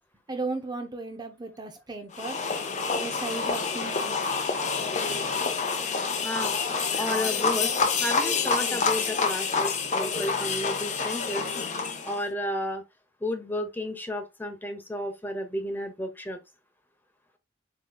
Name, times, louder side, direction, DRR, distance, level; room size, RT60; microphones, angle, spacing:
voice 1, 0.3-2.4 2.9-4.4, right 3 dB, 25° right, 0.6 m, -35 dB
sound 1, 2.1-12.2, left 5 dB, 40° left, 0.8 m, -28 dB
voice 2, 6.2-6.5 7.0-7.7 8.0-11.4 12.0-12.8 13.2-16.4, left 1 dB, 10° left, 0.8 m, -32 dB
7.5 x 3.0 x 2.2 m
head